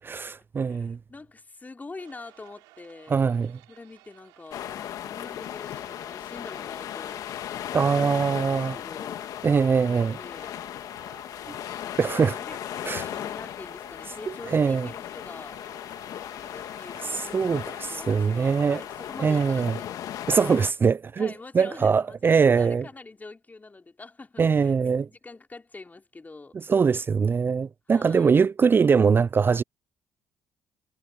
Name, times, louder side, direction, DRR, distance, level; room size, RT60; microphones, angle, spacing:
voice 1, 0.1-1.0 3.1-3.6 7.7-8.8 9.4-10.2 12.0-12.3 12.8-13.1 14.5-14.9 17.0-18.8 19.2-19.8 20.3-22.9 24.4-25.1 26.7-29.6, right 5 dB, 35° right, 0.4 m, -22 dB
voice 2, 0.6-3.2 3.7-9.3 9.9-10.6 11.9-15.6 16.4-20.1 20.4-20.6 21.2-26.6 27.9-28.3, left 3 dB, 25° left, 3.8 m, -45 dB
sound 1, 2.0-19.2, right 22 dB, 85° right, 7.1 m, -55 dB
sound 2, 4.5-20.7, left 11 dB, 70° left, 1.7 m, -37 dB
supercardioid pair, 55°, 6 cm